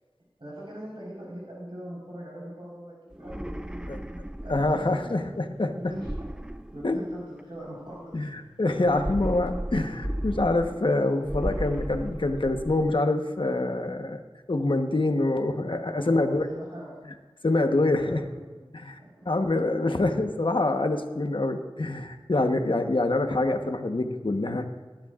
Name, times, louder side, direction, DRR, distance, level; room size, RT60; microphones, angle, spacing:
voice 1, 0.4-5.2 5.9-6.1 6.7-8.1 15.1-15.3 15.9-17.0 17.9-18.4 19.0-19.3, right 1 dB, 65° right, -6 dB, 4.5 m, -41 dB
sound 1, 3.1-5.0 5.9-7.4 8.8-10.9 11.2-13.0, right 1 dB, 10° right, 0.5 m, -35 dB
voice 2, 4.5-5.7 6.8-7.0 8.1-14.2 14.5-16.5 17.4-18.2 18.7-19.0 19.2-24.7, left 2 dB, 60° left, 5 dB, 1.2 m, -25 dB
19.0 x 11.5 x 2.5 m, 1.3 s
wide cardioid pair, 55°, 10 cm